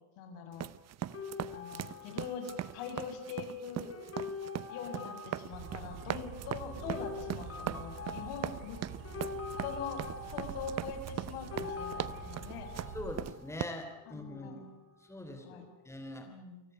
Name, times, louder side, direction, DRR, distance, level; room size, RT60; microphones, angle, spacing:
voice 1, 0.2-0.7 1.5-3.9 4.7-8.8 9.6-12.7 14.1-14.7 15.4-15.7 16.3-16.6, left 6 dB, 75° left, 5 dB, 7.2 m, -43 dB
sound 1, 0.5-13.6, right 11 dB, 35° right, 0.7 m, -40 dB
sound 2, 1.1-11.0 11.4-14.9 15.2-15.7, left 5 dB, 30° left, 3.8 m, -45 dB
sound 3, 5.5-13.1, right 7 dB, 90° right, 5.1 m, -46 dB
voice 2, 12.9-14.6 15.1-16.3, left 1 dB, 5° left, 5 dB, 3.3 m, -43 dB
29.0 x 19.5 x 6.8 m, 1.1 s
cardioid pair, 155°, 49 cm